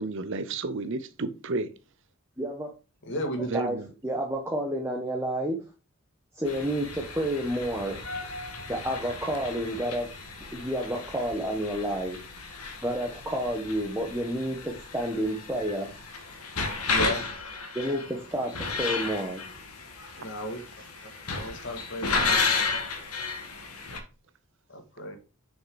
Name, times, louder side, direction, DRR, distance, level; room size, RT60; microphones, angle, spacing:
voice 1, 0.0-1.7 3.5-3.9, right 3 dB, 55° right, 0.7 m, -31 dB
voice 2, 2.4-2.7 3.5-3.8 4.0-5.6 6.3-8.0 8.7-10.1 10.5-12.2 12.8-15.9 17.7-19.4, right 1 dB, 10° right, 1.2 m, -30 dB
voice 3, 3.0-3.5 16.9-17.2 20.2-20.6 21.3-22.4 24.7-25.2, equal, 55° left, 1.9 m, -34 dB
sound 1, 6.5-24.0, left 4 dB, 85° left, 1.8 m, -33 dB
6.5 x 6.3 x 4.8 m
head